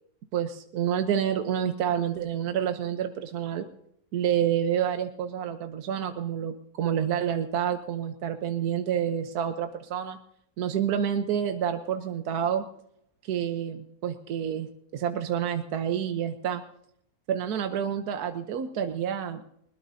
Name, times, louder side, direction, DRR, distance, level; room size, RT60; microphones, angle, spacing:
voice 1, 0.3-3.7 4.1-10.2 10.6-12.6 13.2-16.6 17.3-19.4, right 9 dB, 80° right, 7 dB, 1.4 m, -28 dB
20.5 x 20.5 x 2.7 m, 0.72 s
omnidirectional pair, 1.6 m